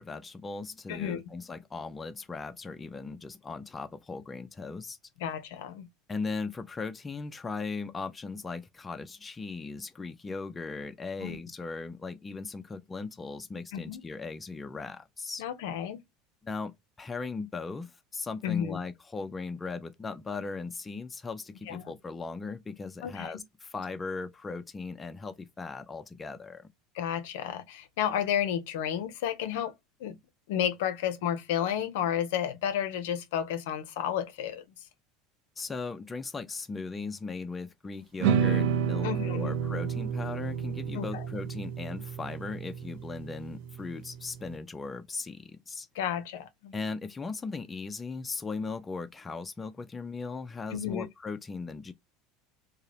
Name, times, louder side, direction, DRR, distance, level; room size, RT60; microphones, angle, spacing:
voice 1, 0.0-5.0 6.1-15.4 16.4-16.7 17.0-26.7 35.6-45.9 46.7-51.9, left 4 dB, 20° left, 0.4 m, -38 dB
voice 2, 0.9-1.2 5.2-5.9 11.2-11.4 13.7-14.0 15.4-16.0 18.4-18.8 21.7-21.8 23.0-23.3 26.9-29.7 30.0-30.1 30.5-34.6 39.0-39.5 40.9-41.3 45.9-46.7 50.7-51.1, left 9 dB, 75° left, 0.5 m, -32 dB
sound 1, 38.2-44.5, right 8 dB, 70° right, 0.4 m, -30 dB
2.8 x 2.0 x 2.3 m
hypercardioid pair, 85°, 0 cm